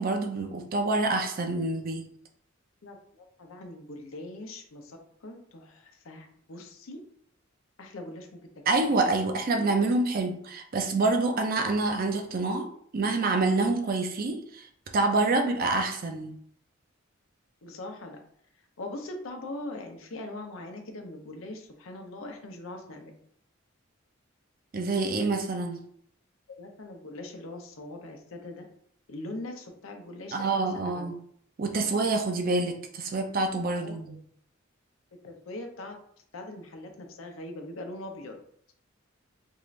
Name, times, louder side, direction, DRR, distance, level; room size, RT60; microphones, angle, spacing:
voice 1, 0.0-2.0 8.7-12.7 12.9-14.7 14.9-16.3 24.7-25.8 30.3-31.1 31.6-34.2, right 3 dB, 45° right, 5 dB, 0.5 m, -27 dB
voice 2, 2.8-7.0 7.8-8.5 8.9-9.0 17.6-18.2 18.5-23.1 26.5-28.6 29.1-31.1 31.8-31.9 33.7-34.2 35.2-35.9 36.3-38.4, left 2 dB, 85° left, 3 dB, 0.7 m, -41 dB
3.6 x 2.5 x 3.1 m, 0.65 s
head